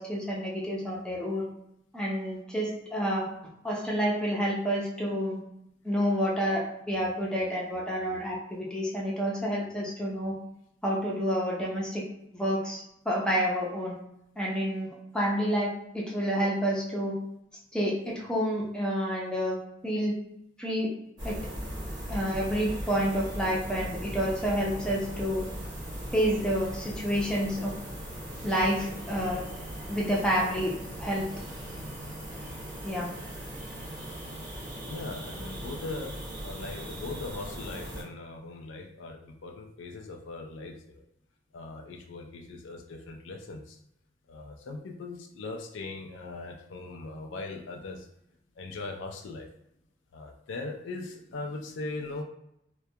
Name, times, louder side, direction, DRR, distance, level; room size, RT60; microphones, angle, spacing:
voice 1, 0.0-1.5 1.9-3.3 3.6-5.4 5.8-10.3 10.8-12.0 12.3-14.0 14.4-17.1 17.7-19.6 19.8-20.2 20.6-20.9 21.2-21.4 22.1-25.5 26.1-27.7 28.4-29.4 29.9-31.3 32.8-33.1, equal, 5° left, -4 dB, 0.5 m, -29 dB
sound 1, 21.2-38.0, right 1 dB, 25° right, 0.8 m, -39 dB
voice 2, 34.8-41.0 41.5-43.8 44.3-48.1 48.6-49.5 50.1-52.2, left 3 dB, 90° left, 3 dB, 0.4 m, -40 dB
2.2 x 2.2 x 2.7 m, 0.80 s
head